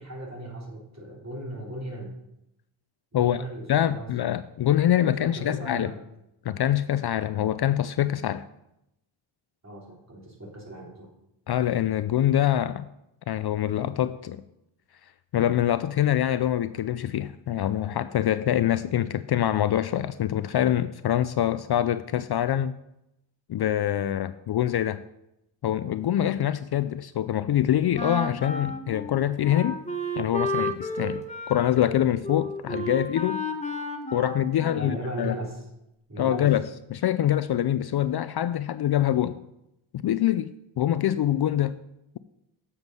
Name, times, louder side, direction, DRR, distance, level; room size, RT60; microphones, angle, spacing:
voice 1, 0.0-2.1 3.1-4.1 5.0-6.0 9.6-11.1 34.7-35.7 36.1-36.5, right 1 dB, 35° right, -2 dB, 3.4 m, -37 dB
voice 2, 3.7-5.9 6.5-8.4 11.5-12.9 13.3-14.4 15.3-22.8 23.5-25.0 25.6-29.8 30.2-33.4 34.1-35.4 36.2-36.6 36.9-39.4 40.0-41.8, left 11 dB, 55° left, 14 dB, 0.5 m, -25 dB
Wind instrument woodwind instrument, 27.9-35.2, equal, 15° left, 1.1 m, -32 dB
8.0 x 7.2 x 5.3 m, 0.85 s
cardioid pair, 70°, 49 cm